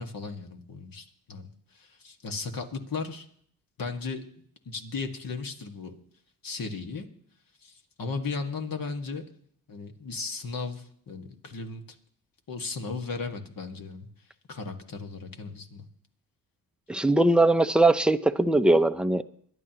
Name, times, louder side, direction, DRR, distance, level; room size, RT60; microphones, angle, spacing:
voice 1, 0.0-3.3 3.8-4.2 4.6-5.9 6.4-7.1 7.6-9.2 9.7-12.0 12.5-14.1 14.5-15.8, left 4 dB, 55° left, 5 dB, 1.8 m, -36 dB
voice 2, 16.9-19.2, right 2 dB, ahead, 10 dB, 0.6 m, -21 dB
22.5 x 11.0 x 2.9 m, 0.63 s
supercardioid pair, 50°, 41 cm